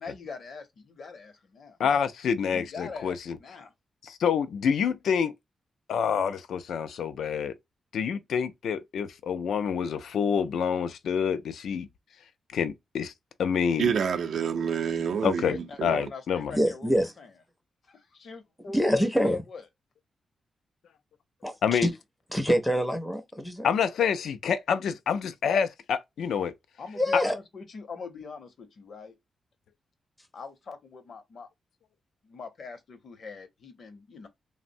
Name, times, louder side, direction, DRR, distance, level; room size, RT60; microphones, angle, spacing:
voice 1, 0.0-1.8 2.5-3.7 15.4-17.3 18.2-19.6 26.8-29.2 30.3-31.5 32.2-34.3, left 4 dB, 55° left, 0.7 m, -42 dB
voice 2, 1.8-3.4 4.0-5.3 5.9-7.5 7.9-11.9 12.5-13.1 13.4-13.9 15.2-16.5 21.6-21.9 23.6-26.5 27.1-27.2, left 7 dB, 80° left, 0.4 m, -27 dB
voice 3, 13.8-16.0, right 7 dB, 65° right, 0.4 m, -28 dB
voice 4, 16.5-17.1 18.7-19.4 21.4-21.9 22.3-23.7 27.0-27.3, equal, 5° left, 0.5 m, -25 dB
3.4 x 2.0 x 2.6 m
wide cardioid pair, 150°, 0 cm